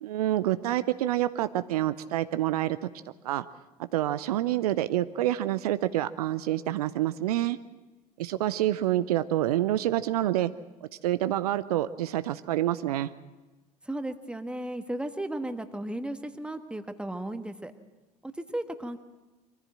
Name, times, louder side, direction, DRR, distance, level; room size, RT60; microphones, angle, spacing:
voice 1, 0.0-2.8 3.2-3.4 3.9-7.6 8.2-10.5 10.8-13.1, right 13 dB, 70° right, 13 dB, 0.6 m, -27 dB
voice 2, 13.8-17.7 18.2-19.0, right 1 dB, 5° right, 8 dB, 1.5 m, -35 dB
24.0 x 15.0 x 7.6 m, 1.2 s
figure-of-eight pair, 65°, 20 cm